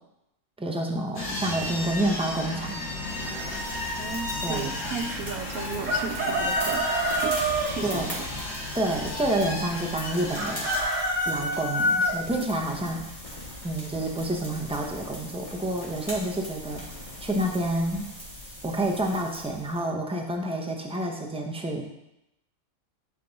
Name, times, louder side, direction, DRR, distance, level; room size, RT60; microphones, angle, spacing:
voice 1, 0.6-2.9 4.4-4.7 7.8-8.2 8.7-10.7 11.3-13.1 13.6-16.8 17.2-18.1 18.6-21.8, right 1 dB, 10° right, 1 dB, 0.3 m, -28 dB
sound 1, 1.1-10.8, left 2 dB, 50° left, 1.9 m, -34 dB
sound 2, 3.0-19.8, equal, 25° left, 2.5 m, -41 dB
voice 2, 4.0-6.8 7.2-7.3 7.7-8.2, right 6 dB, 80° right, 7 dB, 1.1 m, -35 dB
Chicken rooster, 5.8-7.7 10.4-12.1, equal, 65° right, 1.4 m, -26 dB
10.5 x 3.8 x 3.9 m, 0.88 s
omnidirectional pair, 1.5 m